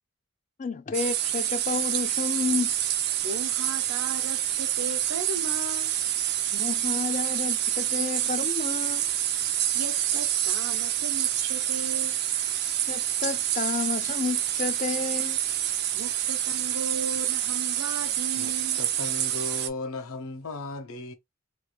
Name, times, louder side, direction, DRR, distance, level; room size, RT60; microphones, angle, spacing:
voice 1, 0.6-2.7 6.5-9.1 12.9-15.4, left 4 dB, 35° left, 0.4 m, -31 dB
sound 1, 0.9-19.7, right 11 dB, 50° right, 0.4 m, -27 dB
voice 2, 3.2-5.9 9.7-12.2 15.9-18.8, right 3 dB, 85° right, 0.8 m, -37 dB
voice 3, 18.4-21.1, left 3 dB, 80° left, 0.8 m, -36 dB
3.2 x 2.5 x 2.9 m
head